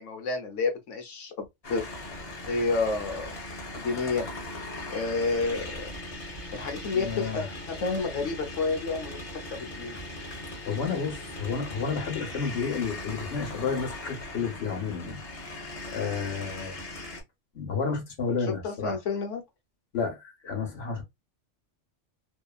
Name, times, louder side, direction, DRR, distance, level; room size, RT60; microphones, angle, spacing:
voice 1, 0.0-1.9 2.5-3.4 3.7-4.2 4.9-5.7 6.5-9.2 9.5-10.0 18.3-19.4, left 4 dB, 90° left, 1.1 m, -30 dB
sound 1, 1.6-17.2, left 1 dB, 35° left, 0.8 m, -39 dB
voice 2, 6.9-7.4 10.7-15.2 15.6-16.8 17.5-19.0 19.9-21.0, left 5 dB, 60° left, 1.2 m, -31 dB
2.8 x 2.3 x 2.3 m
omnidirectional pair, 1.2 m